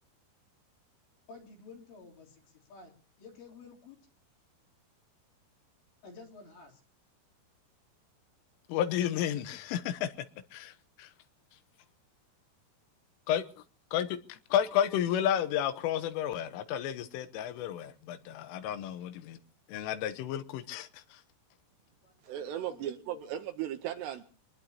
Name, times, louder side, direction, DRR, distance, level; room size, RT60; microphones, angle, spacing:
voice 1, 1.3-2.9 3.2-4.0 6.0-6.8 22.0-23.2, left 4 dB, 65° left, 5.5 m, -52 dB
voice 2, 8.7-10.1 10.5-10.7 11.0-11.1 13.3-13.4 13.9-14.1 14.5-19.4 19.7-21.2, left 10 dB, 85° left, 3.5 m, -31 dB
voice 3, 22.2-24.2, right 11 dB, 75° right, 2.6 m, -36 dB
25.5 x 20.0 x 2.9 m
omnidirectional pair, 5.7 m